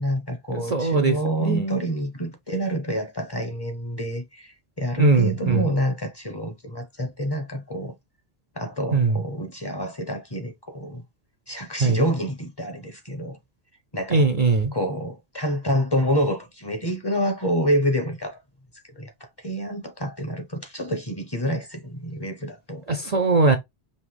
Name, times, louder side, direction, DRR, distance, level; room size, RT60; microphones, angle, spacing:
voice 1, 0.0-7.9 8.6-11.0 11.5-13.4 13.9-14.3 14.7-18.4 18.9-19.1 19.4-22.8, equal, 25° left, 0.9 m, -27 dB
voice 2, 0.5-1.8 5.0-5.7 8.9-9.2 11.8-12.0 14.1-14.7 22.9-23.6, right 3 dB, 45° right, 0.6 m, -21 dB
5.5 x 2.7 x 3.3 m
omnidirectional pair, 1.0 m